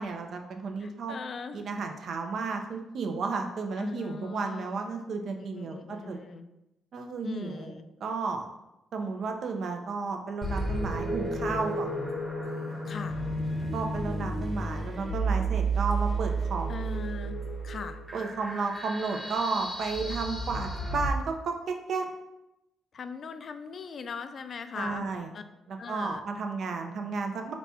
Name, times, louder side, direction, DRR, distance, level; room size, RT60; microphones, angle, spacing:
voice 1, 0.0-1.2 1.5-6.2 6.9-7.7 8.0-8.5 8.9-11.9 13.7-16.7 18.1-22.1 24.7-25.3 25.7-27.5, right 4 dB, 60° right, 4 dB, 0.5 m, -33 dB
voice 2, 0.8-1.7 3.8-4.8 5.3-6.5 7.2-7.9 12.8-13.2 16.7-17.4 17.6-18.0 22.9-25.1 25.3-25.4 25.8-26.2, left 5 dB, 50° left, 9 dB, 0.3 m, -39 dB
sound 1, 10.4-21.1, right 2 dB, ahead, 0.8 m, -32 dB
4.0 x 2.3 x 4.2 m, 0.90 s
cardioid pair, 90°, 0 cm